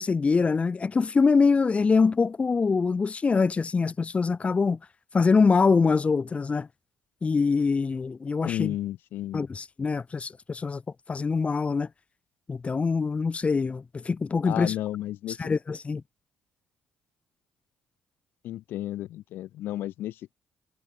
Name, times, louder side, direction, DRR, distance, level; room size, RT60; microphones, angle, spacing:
voice 1, 0.0-4.8 5.1-6.7 7.2-8.7 9.3-10.8 11.1-11.9 12.5-14.7 15.4-16.0, left 4 dB, 35° left, 1.9 m, -24 dB
voice 2, 8.4-9.4 14.4-15.5 18.4-20.3, left 14 dB, 65° left, 5.8 m, -33 dB
hypercardioid pair, 50°, 4 cm